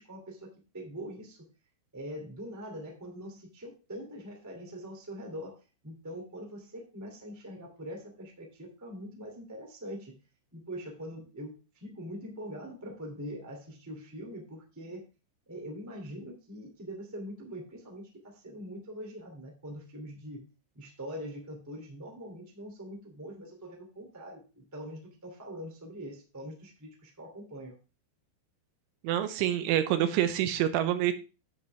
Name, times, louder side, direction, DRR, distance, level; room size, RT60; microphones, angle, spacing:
voice 1, 0.0-1.4 1.9-5.6 5.8-10.1 10.5-15.0 15.5-20.4 20.7-27.7, equal, 10° right, 1 dB, 0.8 m, -43 dB
voice 2, 29.0-31.1, right 11 dB, 80° right, 9 dB, 3.1 m, -27 dB
10.5 x 8.2 x 3.4 m, 0.31 s
omnidirectional pair, 5.7 m